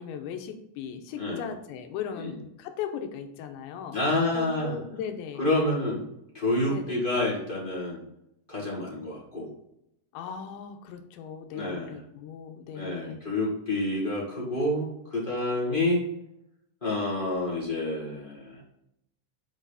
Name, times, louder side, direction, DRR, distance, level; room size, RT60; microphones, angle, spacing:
voice 1, 0.0-4.0 4.3-5.4 6.7-7.0 10.1-13.2, left 7 dB, 80° left, 6 dB, 3.1 m, -38 dB
voice 2, 3.9-4.8 5.4-6.0 6.3-8.0 8.5-9.5 11.5-12.0 12.7-16.0 16.8-18.6, left 1 dB, 45° left, -5 dB, 0.6 m, -28 dB
8.1 x 6.2 x 4.1 m, 0.80 s
omnidirectional pair, 5.3 m